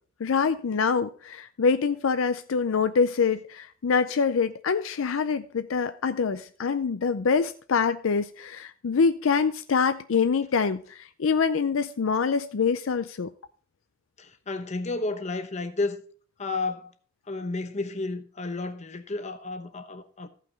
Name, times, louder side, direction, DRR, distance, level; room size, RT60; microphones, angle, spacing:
voice 1, 0.2-13.3, left 5 dB, 70° left, 0.5 m, -25 dB
voice 2, 14.2-16.0 16.4-16.9 17.3-20.3, left 3 dB, 35° left, 0.9 m, -32 dB
14.5 x 5.8 x 4.0 m
head